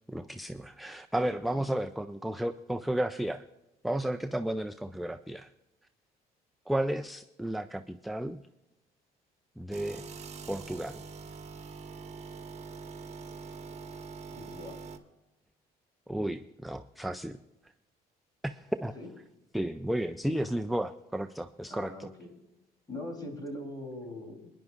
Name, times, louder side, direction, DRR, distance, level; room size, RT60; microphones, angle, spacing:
voice 1, 0.1-3.4 3.8-5.5 6.7-8.4 9.6-10.1 10.5-11.0 16.1-17.4 17.6-17.7 18.4-19.0 19.5-22.1, right 1 dB, ahead, 9 dB, 0.3 m, -33 dB
sound 1, 9.7-15.0, right 4 dB, 40° right, 1.3 m, -44 dB
voice 2, 14.3-14.8 18.9-19.1 21.7-22.3 22.9-24.5, left 1 dB, 25° left, 2 dB, 3.4 m, -41 dB
23.5 x 10.5 x 2.5 m, 0.96 s
cardioid pair, 110°, 17 cm